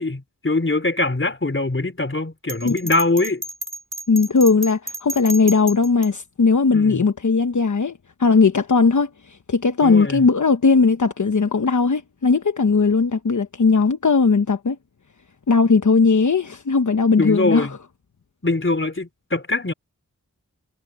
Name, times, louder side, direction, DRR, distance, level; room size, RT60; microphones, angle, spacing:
voice 1, 0.0-3.4 6.7-7.1 9.8-10.3 17.2-17.8 18.4-19.7, left 2 dB, 40° left, 3.9 m, -23 dB
Bell, 2.5-6.1, right 1 dB, 85° right, 5.3 m, -31 dB
voice 2, 4.1-14.8 15.5-17.7, left 4 dB, 70° left, 1.1 m, -18 dB
wide cardioid pair, 50°, 31 cm